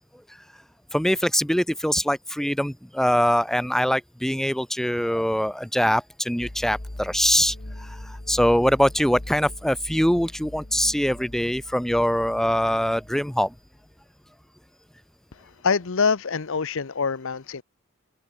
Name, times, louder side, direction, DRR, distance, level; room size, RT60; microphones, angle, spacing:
voice 1, 0.9-13.5, equal, ahead, 1.1 m, -23 dB
sound 1, 6.4-13.8, left 1 dB, 45° left, 1.7 m, -40 dB
voice 2, 15.4-17.6, left 5 dB, 65° left, 0.8 m, -25 dB
head